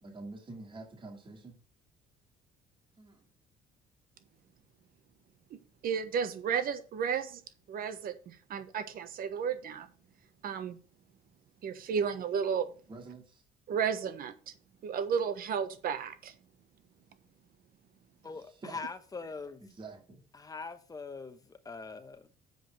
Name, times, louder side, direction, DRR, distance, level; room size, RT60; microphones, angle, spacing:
voice 1, 0.0-1.6 3.0-3.3 12.9-13.4 18.6-18.8 19.6-20.2, right 3 dB, 30° right, 2.3 m, -47 dB
voice 2, 5.8-7.4 7.7-9.9 10.4-10.8 11.6-12.7 13.7-14.5 14.8-16.3, right 7 dB, 60° right, 1.2 m, -33 dB
voice 3, 18.2-19.6 20.3-22.4, left 4 dB, 20° left, 1.1 m, -43 dB
7.8 x 5.0 x 6.4 m
cardioid pair, 110°, 17 cm